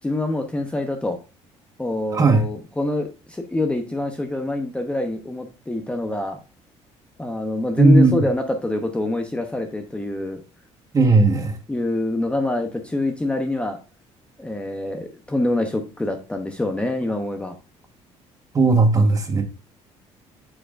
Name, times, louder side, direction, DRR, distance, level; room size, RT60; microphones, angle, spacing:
voice 1, 0.0-1.2 1.8-6.4 7.2-10.4 11.7-13.8 14.4-17.5, left 2 dB, 10° left, 5 dB, 0.8 m, -25 dB
voice 2, 2.1-2.4 7.8-8.3 10.9-11.6 18.5-19.4, right 3 dB, 30° right, 5 dB, 1.4 m, -16 dB
8.7 x 4.7 x 2.5 m, 0.32 s
cardioid pair, 120°, 12 cm